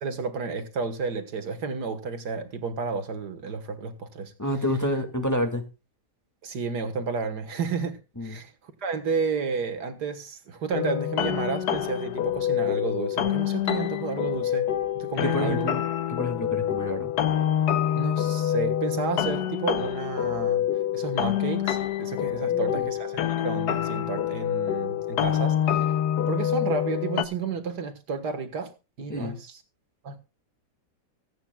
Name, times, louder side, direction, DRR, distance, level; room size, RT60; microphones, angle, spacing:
voice 1, 0.0-4.3 6.4-8.5 8.8-14.7 14.9-15.7 17.9-20.7 20.9-25.9 26.3-28.7 29.0-29.6 30.0-30.2, right 5 dB, 70° right, 2.0 m, -31 dB
voice 2, 4.4-5.6 8.2-8.4 15.2-15.8 16.1-17.1 22.4-22.9 29.1-29.4, equal, 10° left, 2.0 m, -29 dB
sound 1, 10.7-27.3, left 10 dB, 70° left, 1.3 m, -26 dB
25.0 x 9.0 x 2.3 m
omnidirectional pair, 1.9 m